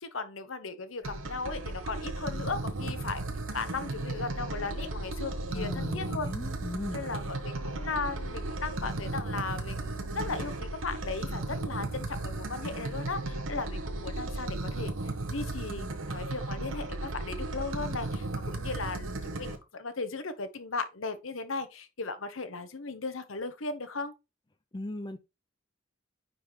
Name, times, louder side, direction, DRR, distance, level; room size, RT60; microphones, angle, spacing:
voice 1, 0.0-3.2 3.5-6.3 6.9-14.9 15.3-24.1, left 4 dB, 80° left, 1.0 m, -37 dB
sound 1, 1.0-19.6, right 2 dB, 75° right, 1.2 m, -35 dB
voice 2, 5.5-7.0 24.7-25.2, left 2 dB, 20° left, 0.5 m, -37 dB
9.7 x 4.0 x 3.2 m
head